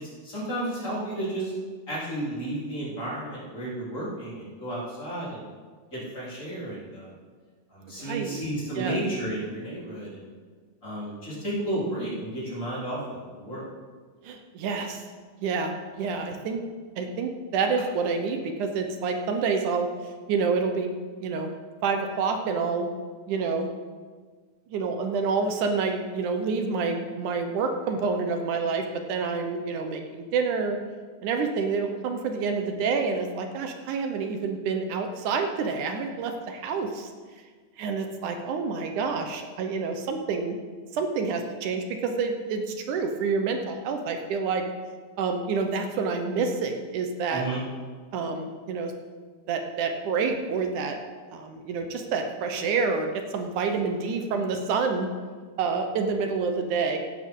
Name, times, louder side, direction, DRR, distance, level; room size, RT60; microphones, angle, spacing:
voice 1, 0.0-1.5 1.9-5.4 5.9-7.2 7.7-10.3 10.8-13.6 47.3-47.6, right 1 dB, 20° left, -7 dB, 3.9 m, -32 dB
voice 2, 7.9-8.4 8.8-9.0 14.2-15.0 15.4-16.6 17.0-19.9 20.3-20.9 21.2-21.5 21.8-22.9 23.3-23.7 24.7-30.8 31.2-37.1 37.8-40.6 40.9-44.7 45.2-47.4 48.1-48.9 49.5-51.0 51.3-55.1 55.6-57.0, right 5 dB, 70° right, 5 dB, 2.1 m, -28 dB
16.0 x 11.0 x 3.8 m, 1.5 s
omnidirectional pair, 4.3 m